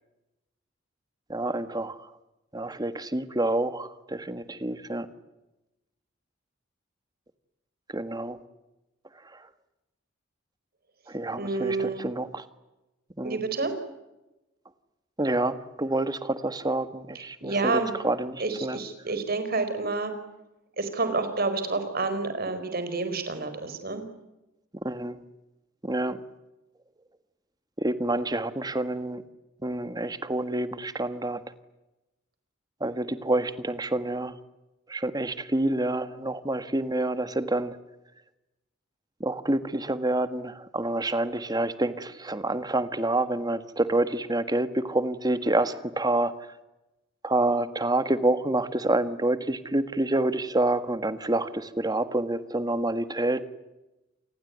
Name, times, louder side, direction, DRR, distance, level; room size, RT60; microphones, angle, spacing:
voice 1, 1.3-2.1 2.5-5.1 7.9-8.4 11.1-12.4 13.2-13.4 15.2-18.8 24.8-25.2 25.8-26.2 27.8-29.2 29.6-31.4 32.8-34.3 34.9-37.7 39.2-46.3 47.2-53.4, right 2 dB, 20° right, 11 dB, 1.5 m, -28 dB
voice 2, 11.4-12.1 13.2-13.7 17.4-17.9 18.4-20.1 20.8-24.0, right 3 dB, 50° right, 9 dB, 4.6 m, -29 dB
28.5 x 20.0 x 9.4 m, 0.99 s
head